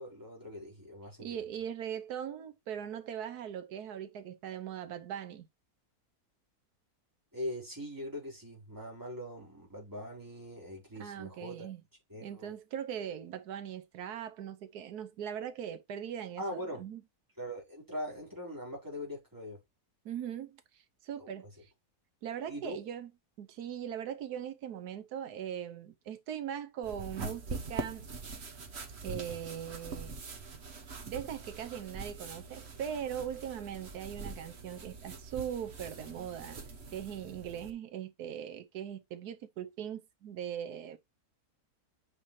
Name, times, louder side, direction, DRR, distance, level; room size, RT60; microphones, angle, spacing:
voice 1, 0.0-1.5 7.3-11.7 12.1-12.5 16.4-16.9 17.4-19.6 21.2-21.3 22.5-22.8, left 1 dB, 10° right, 3.9 m, -41 dB
voice 2, 1.2-5.5 11.0-11.8 12.2-17.0 20.0-21.7 22.2-23.1 23.4-28.1 29.0-30.1 31.0-36.6 36.9-41.0, right 9 dB, 85° right, 1.3 m, -40 dB
sound 1, 26.8-37.7, right 4 dB, 45° right, 1.3 m, -43 dB
8.6 x 5.4 x 3.1 m
omnidirectional pair, 1.6 m